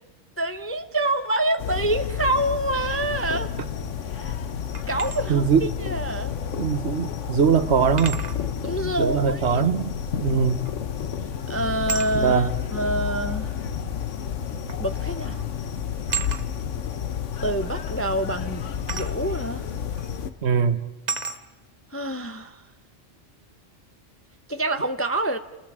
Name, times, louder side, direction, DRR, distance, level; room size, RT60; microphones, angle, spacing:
voice 1, 0.4-3.5 4.1-4.3 4.9-6.4 8.6-9.6 11.5-13.5 14.8-15.4 17.4-19.7 21.9-22.6 24.5-25.4, right 1 dB, 15° left, 0.5 m, -27 dB
sound 1, 1.6-20.3, left 8 dB, 90° left, 1.3 m, -30 dB
sound 2, 4.7-5.2 6.7-6.8 8.0-8.4 10.7-11.0 11.9-12.1 13.3-13.4 14.7-14.9 15.2-15.5 16.1-16.5 18.9-19.2 20.0-20.1 21.1-21.4, right 5 dB, 40° right, 1.1 m, -32 dB
voice 2, 5.3-5.6 6.6-8.2 9.0-9.9 10.2-10.6 12.1-12.5 20.4-20.8, right 6 dB, 65° right, 1.2 m, -21 dB
29.5 x 20.5 x 4.8 m
omnidirectional pair, 1.2 m